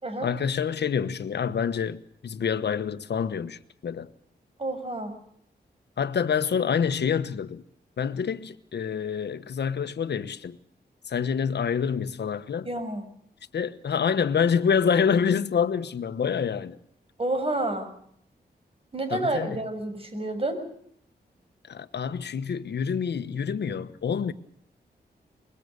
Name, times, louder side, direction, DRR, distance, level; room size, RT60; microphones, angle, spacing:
voice 1, 0.2-4.1 6.0-7.6 8.0-10.6 11.1-12.7 13.5-16.8 19.1-19.6 21.7-24.3, left 7 dB, 80° left, 1.3 m, -27 dB
voice 2, 4.6-5.1 12.6-13.1 17.2-17.9 18.9-20.6, right 2 dB, 35° right, 6.4 m, -29 dB
24.0 x 22.0 x 6.8 m
wide cardioid pair, 85°, 17 cm